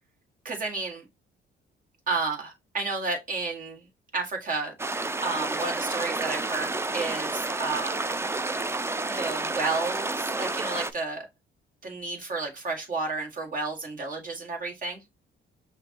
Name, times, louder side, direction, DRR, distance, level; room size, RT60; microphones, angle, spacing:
voice 1, 0.5-1.0 2.1-3.8 4.1-4.7 5.2-8.0 9.1-11.3 11.8-15.0, right 3 dB, 45° right, 1.7 m, -31 dB
sound 1, 4.8-10.9, right 3 dB, 15° right, 0.4 m, -30 dB
5.7 x 2.6 x 2.8 m
cardioid pair, 90°, 20 cm